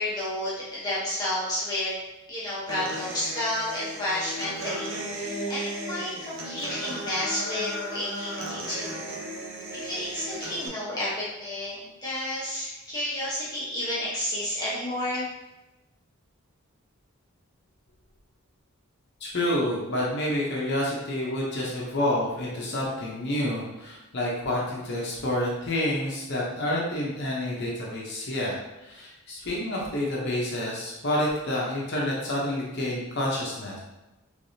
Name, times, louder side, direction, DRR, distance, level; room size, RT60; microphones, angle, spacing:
voice 1, 0.0-1.9 2.3-9.0 9.7-15.3, left 1 dB, 20° left, -9 dB, 0.9 m, -31 dB
Human voice / Acoustic guitar, 2.7-10.7, right 1 dB, 60° right, 0.6 m, -35 dB
voice 2, 19.2-33.8, left 1 dB, 55° left, -4 dB, 0.7 m, -28 dB
3.3 x 3.2 x 2.7 m, 0.99 s
head